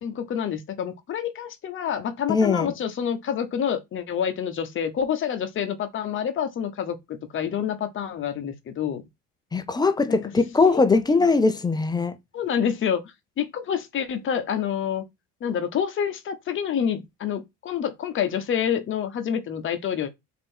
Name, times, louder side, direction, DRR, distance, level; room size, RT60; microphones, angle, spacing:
voice 1, 0.0-9.0 10.1-10.2 10.6-10.9 12.3-15.0 15.4-20.1, left 8 dB, 25° left, 0.9 m, -28 dB
voice 2, 2.3-2.7 9.5-12.2, left 4 dB, 10° left, 0.5 m, -21 dB
4.5 x 2.6 x 4.3 m
figure-of-eight pair, 60°, 46 cm